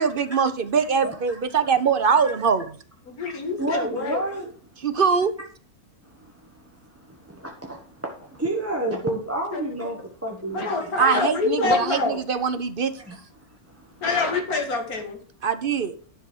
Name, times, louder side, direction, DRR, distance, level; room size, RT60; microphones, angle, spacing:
voice 1, 0.0-2.6 4.8-5.3 11.0-12.9 15.4-15.9, right 6 dB, 45° right, 11 dB, 0.9 m, -22 dB
voice 2, 0.8-1.4 2.0-2.3 3.6-4.5 6.0-11.0 13.0-14.0, right 1 dB, 10° right, -1 dB, 1.3 m, -31 dB
voice 3, 3.1-4.2 9.5-9.7 10.5-12.2 14.0-15.2, left 3 dB, 75° left, 5 dB, 2.4 m, -25 dB
11.0 x 6.4 x 6.2 m, 0.42 s
omnidirectional pair, 1.6 m